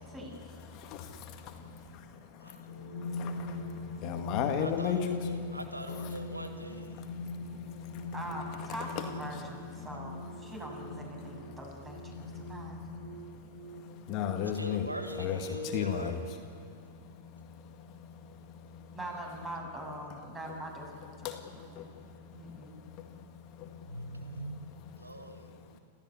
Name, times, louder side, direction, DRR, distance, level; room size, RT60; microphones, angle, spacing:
voice 1, 0.0-0.6 8.1-12.8 18.9-21.9 22.3-22.8, right 1 dB, 15° right, 0 dB, 7.8 m, -43 dB
voice 2, 0.7-1.7 2.7-5.6 5.9-8.1 12.2-13.0 13.7-14.9 15.2-16.2 16.5-16.6 17.2-17.4 17.8-18.8 21.2-21.9 22.3-22.5 23.0-23.2 23.6-23.9 24.1-24.4, left 8 dB, 40° left, 5 dB, 2.1 m, -37 dB
sound 1, 2.7-16.3, left 1 dB, 65° right, 2.9 m, -42 dB
voice 3, 4.6-7.1 13.4-13.5 14.4-16.2 23.9-25.8, right 1 dB, 90° right, 8 dB, 1.4 m, -43 dB
27.5 x 15.5 x 9.9 m, 2.5 s
figure-of-eight pair, 95°, 0 cm